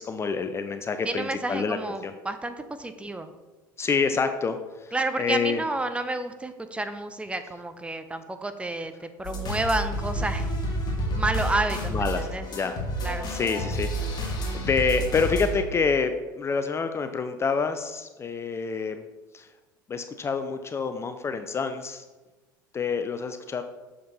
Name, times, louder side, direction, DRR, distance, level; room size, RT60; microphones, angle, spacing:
voice 1, 0.0-1.8 2.0-2.1 3.8-5.6 11.9-12.8 13.3-13.9 14.2-19.0 19.3-19.5 19.9-22.0 22.7-23.6, left 5 dB, 25° left, 8 dB, 0.5 m, -27 dB
voice 2, 1.0-3.3 4.9-10.5 11.1-12.5 13.0-13.3, right 2 dB, 10° right, 9 dB, 0.6 m, -30 dB
sound 1, 9.2-15.6, right 1 dB, 40° left, 2.0 m, -30 dB
6.9 x 5.1 x 4.1 m, 1.2 s
hypercardioid pair, 70°, 11 cm